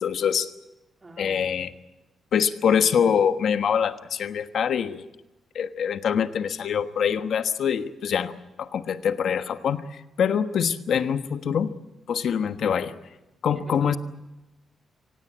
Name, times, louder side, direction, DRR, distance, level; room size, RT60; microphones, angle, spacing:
voice 1, 0.0-0.5 1.2-1.7 2.3-5.0 5.5-11.7 12.1-12.9 13.4-14.0, left 7 dB, 65° left, 9 dB, 1.3 m, -24 dB
voice 2, 1.0-1.7 9.6-9.7 13.5-14.0, right 2 dB, 20° right, 4 dB, 2.7 m, -47 dB
25.0 x 18.0 x 8.7 m, 1.0 s
wide cardioid pair, 150°, 0 cm